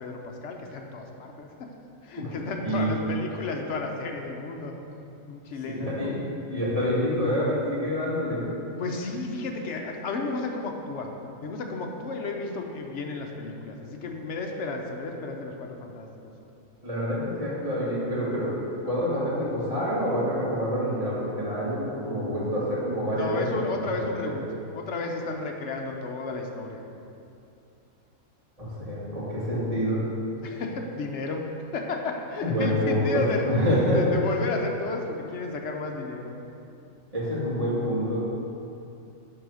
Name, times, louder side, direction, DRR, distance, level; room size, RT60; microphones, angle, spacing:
voice 1, 0.0-1.7 2.0-4.7 5.3-6.2 8.8-11.1 11.4-16.1 23.1-24.4 24.7-26.8 30.4-31.5 31.7-36.3, left 3 dB, 60° left, 2 dB, 1.1 m, -32 dB
voice 2, 5.6-6.1 6.5-8.5 16.8-18.6 18.8-24.4 28.6-30.1 32.4-34.0 37.1-38.2, equal, 25° right, -8 dB, 2.3 m, -27 dB
10.5 x 4.0 x 6.3 m, 2.7 s
omnidirectional pair, 1.5 m